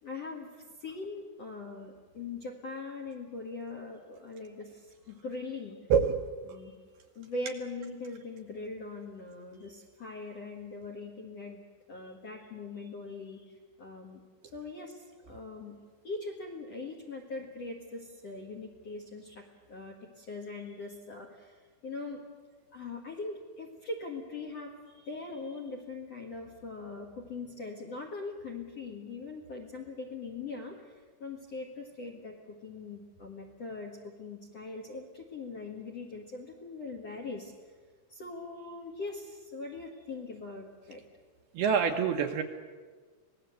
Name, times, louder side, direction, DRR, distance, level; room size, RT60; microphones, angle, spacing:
voice 1, 0.0-5.8 6.5-6.8 7.2-11.6 11.9-14.2 14.5-15.8 16.0-22.2 22.7-37.7 38.1-41.0, left 3 dB, 60° left, 3 dB, 1.7 m, -41 dB
voice 2, 41.6-42.4, right 7 dB, 75° right, 5 dB, 2.4 m, -25 dB
25.5 x 19.0 x 7.9 m, 1.5 s
omnidirectional pair, 5.4 m